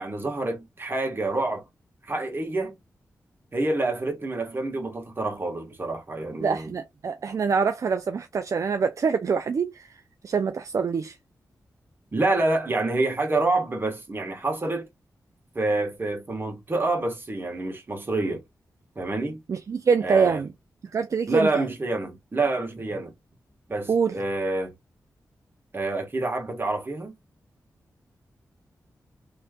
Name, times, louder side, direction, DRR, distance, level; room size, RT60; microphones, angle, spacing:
voice 1, 0.0-1.6 2.1-2.7 3.5-6.7 12.1-14.9 15.5-18.4 18.9-19.4 20.0-20.4 21.3-23.1 23.7-24.7 25.7-27.1, right 2 dB, 35° right, 1.4 m, -27 dB
voice 2, 6.4-9.9 10.2-11.2 19.5-20.5 20.9-21.6 23.9-24.2, right 5 dB, 55° right, 0.4 m, -25 dB
3.2 x 3.0 x 2.3 m
cardioid pair, 80°, 6 cm